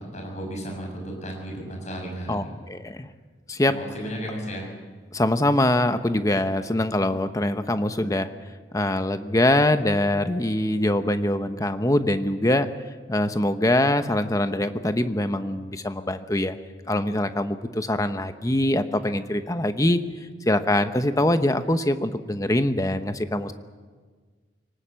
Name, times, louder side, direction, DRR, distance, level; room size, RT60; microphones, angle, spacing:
voice 1, 0.0-2.5 3.7-4.7, equal, 40° left, 1 dB, 6.8 m, -34 dB
voice 2, 2.3-3.1 3.5-3.7 5.1-8.3 8.7-12.7 13.1-16.5 16.9-20.0 20.4-23.5, left 1 dB, 20° left, 9 dB, 1.0 m, -23 dB
23.5 x 19.0 x 7.6 m, 1.5 s
head